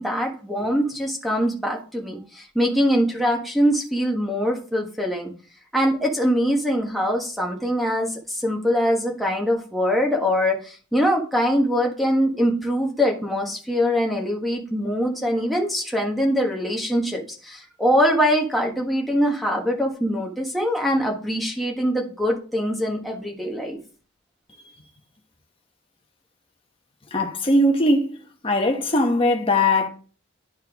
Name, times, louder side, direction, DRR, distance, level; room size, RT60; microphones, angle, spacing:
voice 1, 0.0-5.3 5.7-23.8, equal, ahead, 1.3 m, -23 dB
voice 2, 27.1-28.2 28.4-29.9, left 1 dB, 25° left, 1.1 m, -20 dB
11.0 x 4.4 x 3.6 m
head